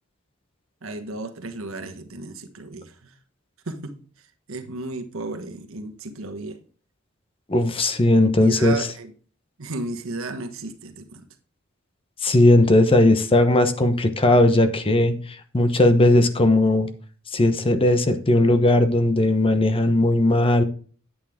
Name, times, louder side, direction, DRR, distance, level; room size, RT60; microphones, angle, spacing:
voice 1, 0.8-3.2 3.6-6.6 8.2-9.1 9.6-11.3, right 2 dB, 75° right, 1.3 m, -33 dB
voice 2, 7.5-8.8 12.2-16.9 17.3-20.6, left 1 dB, 25° left, 0.9 m, -18 dB
9.7 x 8.6 x 3.6 m
head